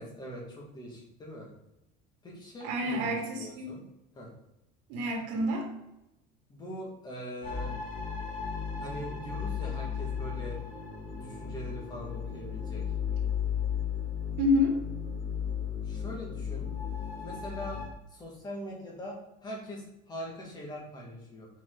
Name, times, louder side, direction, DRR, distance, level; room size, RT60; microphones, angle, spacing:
voice 1, 0.0-1.5 2.2-3.8 4.1-4.3 6.5-7.7 8.8-10.6 11.1-12.8 15.8-16.7 17.2-17.8 18.1-21.5, equal, 20° left, -2 dB, 1.7 m, -42 dB
voice 2, 2.6-3.7 4.9-5.7 14.4-14.8, left 1 dB, 85° right, 1 dB, 1.8 m, -28 dB
sound 1, 7.4-17.9, left 7 dB, 45° left, 2.0 m, -35 dB
5.6 x 4.9 x 3.8 m, 0.89 s
cardioid pair, 165°, 20 cm